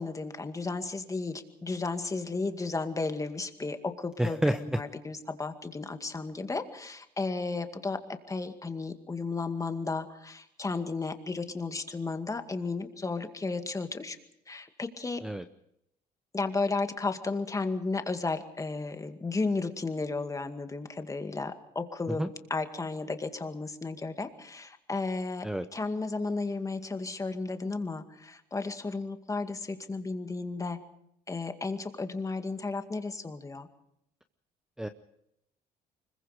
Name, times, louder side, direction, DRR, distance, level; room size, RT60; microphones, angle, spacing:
voice 1, 0.0-14.2 14.5-15.2 16.3-30.8 31.3-33.7, left 3 dB, 20° left, 8 dB, 2.1 m, -34 dB
voice 2, 4.2-4.8 15.2-15.4 22.2-22.3 25.4-25.6 34.8-34.9, right 1 dB, 5° right, 10 dB, 0.8 m, -29 dB
25.0 x 22.0 x 5.1 m, 0.77 s
cardioid pair, 110°, 17 cm